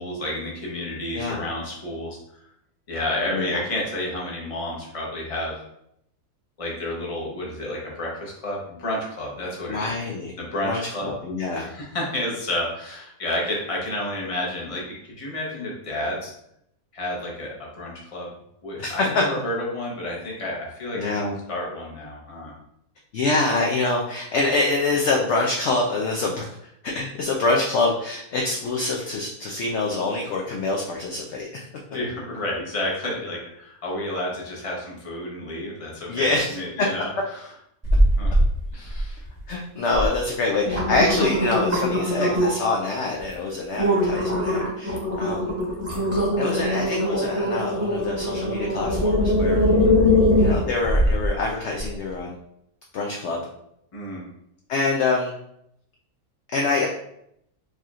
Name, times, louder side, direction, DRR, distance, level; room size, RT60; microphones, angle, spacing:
voice 1, 0.0-2.2 2.9-5.6 6.6-9.9 10.4-11.1 11.6-16.3 16.9-18.3 18.6-21.2 21.5-22.5 31.9-37.5 38.2-38.3 38.7-39.2 49.7-50.0 53.9-54.3, left 1 dB, 30° left, -3 dB, 0.8 m, -30 dB
voice 2, 9.7-10.3 10.6-11.7 18.8-19.2 21.0-21.4 23.1-26.5 26.8-31.7 36.1-36.6 39.5-45.5 46.4-49.6 50.4-52.4 52.9-53.4 54.7-55.4 56.5-56.9, left 3 dB, 70° left, -1 dB, 0.7 m, -25 dB
sound 1, 37.8-38.5 38.9-39.4 39.9-40.1 40.5-42.7 43.2-43.3 43.8-51.3 51.8-51.9, left 1 dB, 10° right, 0.8 m, -21 dB
4.7 x 2.9 x 2.4 m, 0.76 s
omnidirectional pair, 1.6 m